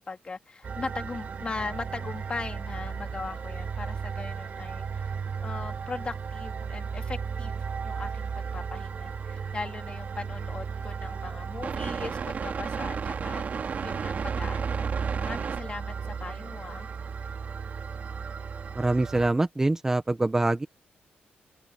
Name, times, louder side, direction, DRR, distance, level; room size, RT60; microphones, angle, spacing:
voice 1, 0.0-5.1 5.4-7.5 7.8-16.9, left 4 dB, 30° left, 3.2 m, -39 dB
sound 1, 0.6-19.3, right 6 dB, 50° right, 2.6 m, -34 dB
voice 2, 18.7-20.7, right 2 dB, 15° right, 1.0 m, -24 dB
open air
cardioid pair, 125°, 4 cm